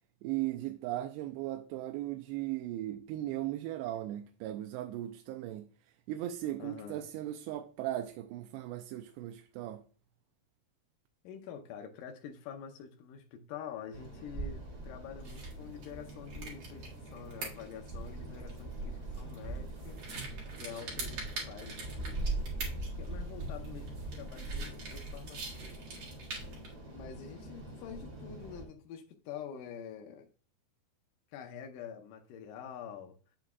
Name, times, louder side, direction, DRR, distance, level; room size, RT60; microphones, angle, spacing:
voice 1, 0.2-9.8, right 14 dB, 90° right, 2.7 m, -37 dB
voice 2, 6.6-7.0 11.2-20.0 20.6-22.3 23.0-26.1 26.9-30.3 31.3-33.2, left 8 dB, 85° left, 1.9 m, -47 dB
sound 1, 13.9-28.6, right 2 dB, 35° right, 2.3 m, -42 dB
sound 2, 15.2-26.7, right 3 dB, 55° right, 2.9 m, -46 dB
8.1 x 7.3 x 2.3 m
omnidirectional pair, 4.8 m